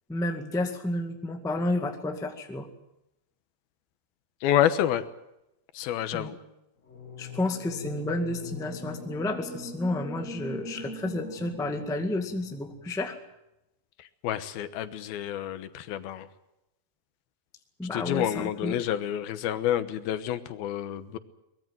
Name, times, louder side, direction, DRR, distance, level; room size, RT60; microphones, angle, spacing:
voice 1, 0.1-2.7 6.1-6.3 7.2-13.2 17.8-18.9, left 1 dB, ahead, 5 dB, 0.7 m, -31 dB
voice 2, 4.4-5.0 5.7-6.4 14.2-16.3 17.9-21.2, left 11 dB, 90° left, 12 dB, 3.0 m, -28 dB
sound 1, 6.8-13.0, left 3 dB, 60° left, 0.8 m, -41 dB
23.0 x 21.0 x 7.8 m, 0.90 s
omnidirectional pair, 4.2 m